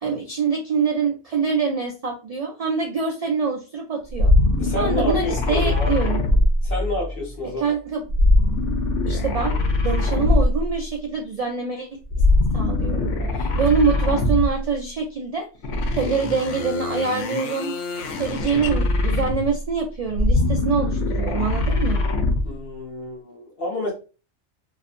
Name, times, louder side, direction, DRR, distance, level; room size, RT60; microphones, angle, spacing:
voice 1, 0.0-4.3 4.8-6.2 7.6-8.0 9.1-9.6 9.8-11.9 12.5-15.5 16.0-17.7 18.2-22.0, right 5 dB, 80° right, 2 dB, 0.3 m, -25 dB
sound 1, 4.1-7.2 8.1-10.8 12.1-14.7 15.6-19.6 20.1-22.6, left 2 dB, 90° left, 0.9 m, -22 dB
voice 2, 4.6-6.0 6.6-7.6 22.4-23.9, left 1 dB, 55° left, -1 dB, 1.2 m, -29 dB
2.6 x 2.4 x 2.4 m, 0.33 s
omnidirectional pair, 1.2 m